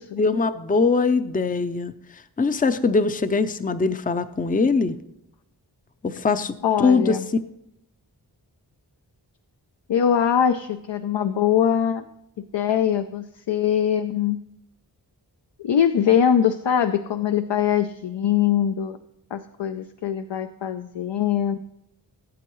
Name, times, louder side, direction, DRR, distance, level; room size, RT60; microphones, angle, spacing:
voice 1, 0.2-1.9 2.4-5.0 6.0-7.2, left 4 dB, 20° left, 11 dB, 0.5 m, -22 dB
voice 2, 6.6-7.3 9.9-12.0 12.5-14.4 15.6-19.0 19.3-21.6, left 9 dB, 75° left, 7 dB, 0.6 m, -22 dB
17.0 x 7.8 x 3.1 m, 0.81 s
wide cardioid pair, 55°, 43 cm